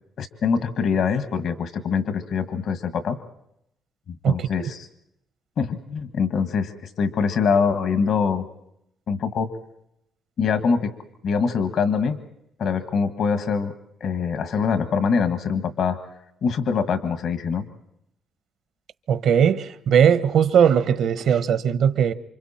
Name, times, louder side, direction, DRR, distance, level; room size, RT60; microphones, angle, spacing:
voice 1, 0.2-3.2 4.1-4.8 5.6-8.4 9.1-9.5 10.4-10.9 11.2-12.2 12.6-13.7 14.0-16.0 16.4-17.6, left 6 dB, 70° left, 1.7 m, -24 dB
voice 2, 4.2-4.7 19.1-22.1, right 8 dB, 70° right, 1.0 m, -19 dB
28.5 x 25.5 x 4.4 m
cardioid pair, 90°, 0 cm